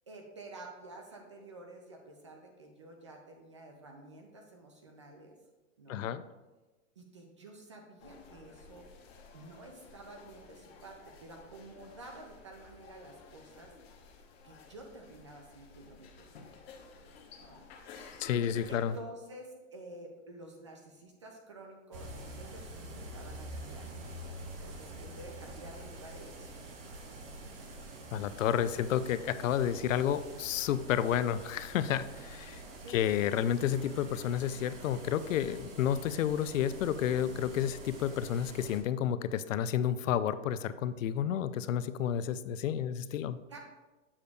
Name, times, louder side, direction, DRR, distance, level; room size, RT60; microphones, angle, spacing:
voice 1, 0.1-5.3 5.8-6.0 7.0-8.9 9.3-13.7 14.4-16.3 17.4-17.7 18.7-23.9 24.6-26.6 28.5-28.7 32.8-33.0 43.5-43.6, right 2 dB, 25° right, 2 dB, 0.3 m, -50 dB
voice 2, 5.9-6.2 18.2-18.9 28.1-32.6 32.9-43.4, left 9 dB, 75° left, 14 dB, 0.5 m, -31 dB
sound 1, 8.0-19.0, left 5 dB, 50° left, 1.0 m, -54 dB
sound 2, 21.9-38.8, right 1 dB, 45° right, 1.1 m, -46 dB
7.2 x 6.5 x 2.3 m, 1.2 s
hypercardioid pair, 160°, 39 cm